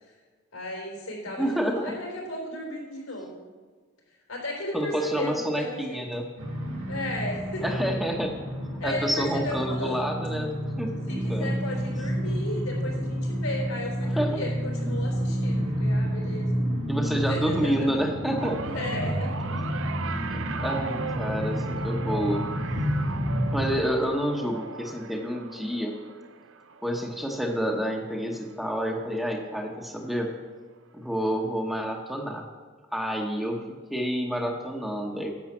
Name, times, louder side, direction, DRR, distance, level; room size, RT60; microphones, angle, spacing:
voice 1, 0.5-3.5 4.3-6.0 6.9-7.6 8.8-10.0 11.1-16.6 17.3-17.9 18.7-19.7, left 1 dB, 80° left, 0 dB, 4.0 m, -35 dB
voice 2, 1.4-1.8 4.7-6.2 7.6-8.3 8.8-11.5 14.2-14.3 16.9-18.6 20.3-22.5 23.5-25.9 26.8-30.3 30.9-32.5 32.9-33.6 33.9-35.4, equal, ahead, 1 dB, 1.1 m, -29 dB
sound 1, 6.4-23.8, equal, 85° right, 2.5 m, -30 dB
sound 2, 18.3-28.8 29.1-29.5 30.6-30.7, right 5 dB, 65° right, 0.7 m, -38 dB
10.5 x 7.2 x 7.3 m, 1.5 s
head